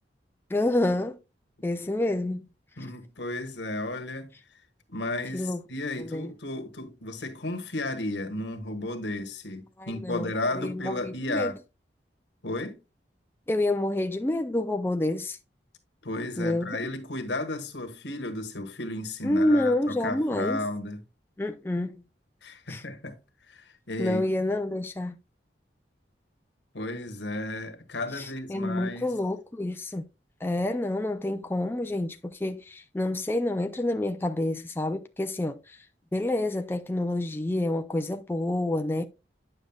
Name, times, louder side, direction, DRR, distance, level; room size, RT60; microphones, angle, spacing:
voice 1, 0.5-1.2 1.6-2.5 5.3-5.6 6.0-6.3 9.8-11.5 13.5-15.4 16.4-16.8 19.2-20.6 21.4-22.0 22.7-22.8 24.0-25.2 28.2-30.1 30.4-35.8 36.1-39.1, left 1 dB, 10° left, 0.4 m, -28 dB
voice 2, 2.8-4.3 4.9-11.6 12.4-12.8 16.0-21.0 22.4-23.2 23.5-24.2 26.7-29.1, left 2 dB, 85° left, 1.4 m, -33 dB
9.3 x 6.4 x 2.3 m
head